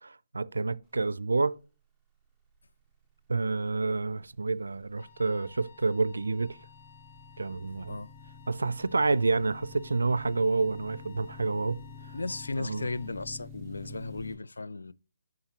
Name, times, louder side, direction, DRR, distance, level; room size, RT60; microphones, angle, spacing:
voice 1, 0.0-1.6 3.3-6.6 7.4-8.0 8.5-12.1 12.6-12.9, right 3 dB, 85° right, 0.4 m, -29 dB
sound 1, 3.5-14.4, left 5 dB, ahead, 1.0 m, -49 dB
Wind instrument woodwind instrument, 5.0-13.2, left 9 dB, 65° left, 1.5 m, -57 dB
voice 2, 12.1-14.9, left 3 dB, 85° left, 0.4 m, -35 dB
11.0 x 3.8 x 2.9 m
figure-of-eight pair, 150°, 0 cm